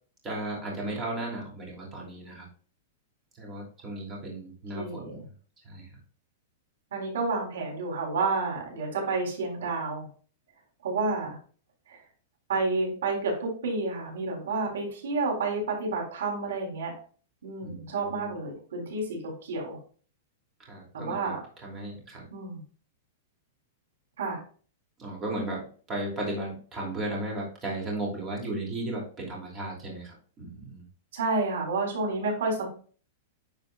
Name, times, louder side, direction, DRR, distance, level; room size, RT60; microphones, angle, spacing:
voice 1, 0.2-2.5 3.4-5.3 5.6-5.8 17.6-18.3 20.6-21.3 21.6-22.2 25.0-30.8, right 1 dB, 20° right, -3 dB, 2.8 m, -35 dB
voice 2, 4.7-5.2 6.9-10.1 10.8-11.4 11.9-12.0 12.5-16.9 17.4-19.8 20.9-21.4 22.3-22.6 24.2-24.4 31.1-32.7, right 3 dB, 90° right, -1 dB, 3.7 m, -30 dB
10.0 x 4.9 x 2.4 m, 0.41 s
supercardioid pair, 165°, 0 cm